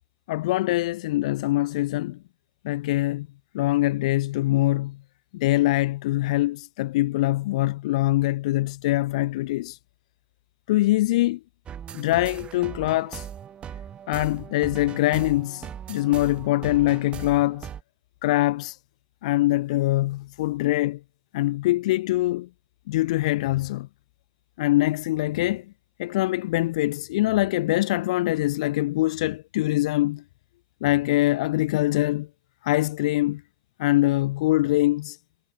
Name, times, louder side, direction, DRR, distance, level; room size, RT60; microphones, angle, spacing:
voice 1, 0.3-2.2 2.6-3.3 3.5-5.0 5.3-9.8 10.7-11.4 11.9-13.3 14.1-17.7 18.2-18.8 19.2-21.0 21.3-22.5 22.9-23.9 24.6-25.7 26.0-30.2 30.8-32.3 32.6-33.4 33.8-35.2, left 17 dB, 80° left, 0.3 m, -23 dB
sound 1, 11.7-17.8, right 9 dB, 30° right, 1.1 m, -39 dB
supercardioid pair, 120°, 4 cm